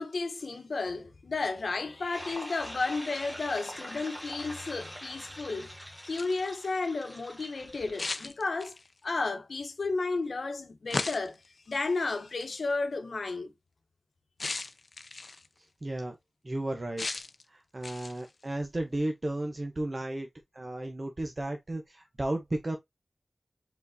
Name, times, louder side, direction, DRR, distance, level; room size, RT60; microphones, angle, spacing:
voice 1, 0.0-5.8 6.0-11.4 11.7-13.5, left 3 dB, 75° left, 0.9 m, -33 dB
sound 1, 1.7-6.8, left 2 dB, 40° left, 0.9 m, -51 dB
sound 2, 2.1-8.3, equal, 15° right, 1.5 m, -44 dB
sound 3, 6.0-6.5 8.0-8.9 10.9-11.5 12.4-12.6 14.4-15.5 17.0-17.4 17.8-18.3, left 3 dB, 55° left, 0.6 m, -36 dB
voice 2, 15.8-16.1 16.4-17.1 17.5-20.3 20.5-22.8, right 1 dB, 35° right, 0.8 m, -34 dB
4.9 x 3.9 x 2.7 m
wide cardioid pair, 95°, 0 cm